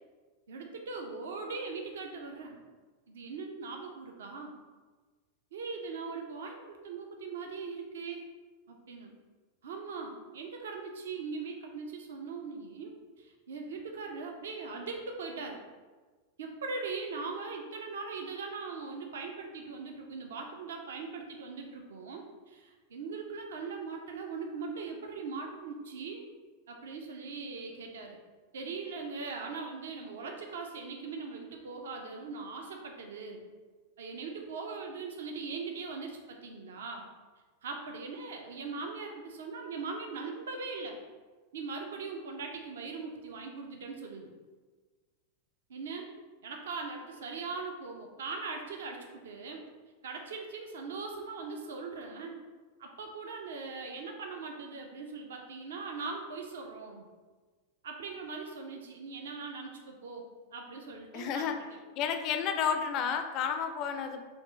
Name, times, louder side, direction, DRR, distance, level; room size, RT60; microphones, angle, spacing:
voice 1, 0.5-2.6 3.1-4.5 5.5-8.2 8.7-9.1 9.6-15.6 16.4-26.3 26.7-28.2 28.5-33.4 34.0-37.1 37.6-41.0 41.5-44.3 45.7-46.1 46.4-49.7 50.0-52.4 52.8-57.0 57.8-60.2 60.5-61.5, right 4 dB, 60° right, 2 dB, 0.5 m, -40 dB
voice 2, 61.1-61.6 62.0-64.2, left 7 dB, 40° left, 7 dB, 0.4 m, -31 dB
4.5 x 2.4 x 3.9 m, 1.4 s
figure-of-eight pair, 90°, 0 cm